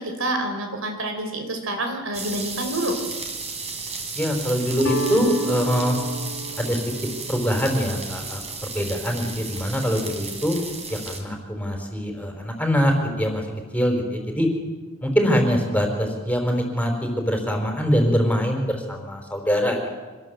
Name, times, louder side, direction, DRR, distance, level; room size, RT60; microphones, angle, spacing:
voice 1, 0.0-3.0, right 1 dB, 75° right, 5 dB, 5.0 m, -27 dB
sound 1, 2.1-11.2, right 4 dB, 30° right, 4.2 m, -34 dB
voice 2, 4.2-6.0 6.6-6.9 7.3-8.4 8.7-10.6 10.9-13.4 13.7-14.5 15.0-19.9, equal, 5° left, 3 dB, 4.7 m, -23 dB
Guitar, 4.8-10.8, right 1 dB, 80° left, 2.8 m, -35 dB
26.5 x 20.5 x 7.9 m, 1.3 s
head